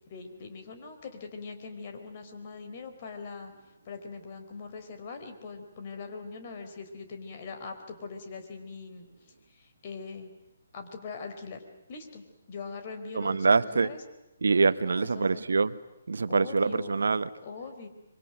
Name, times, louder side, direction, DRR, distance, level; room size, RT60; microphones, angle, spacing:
voice 1, 0.1-3.5 3.9-9.1 9.5-10.3 10.7-11.6 11.9-12.2 12.5-14.0 14.8-15.5 16.3-16.9 17.4-17.9, left 4 dB, 40° left, 4.0 m, -42 dB
voice 2, 13.1-13.9 14.4-15.8 16.1-17.3, right 4 dB, 65° right, 1.0 m, -25 dB
25.0 x 23.5 x 9.3 m
figure-of-eight pair, 140°, 0 cm